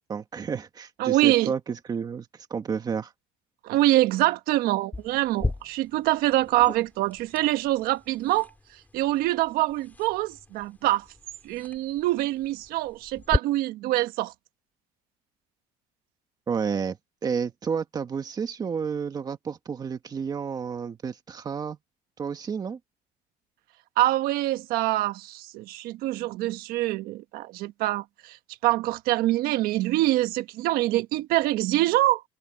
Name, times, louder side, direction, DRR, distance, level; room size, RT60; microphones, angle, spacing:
voice 1, 0.1-3.1 16.5-21.8 22.2-22.8, right 6 dB, 25° right, 1.7 m, -31 dB
voice 2, 1.0-1.5 3.6-8.5 8.9-11.0 11.4-14.3 24.0-28.4 28.6-32.2, right 16 dB, 75° right, 1.4 m, -25 dB
sound 1, 4.9-13.4, left 2 dB, 10° left, 3.2 m, -36 dB
cardioid pair, 165°, 15 cm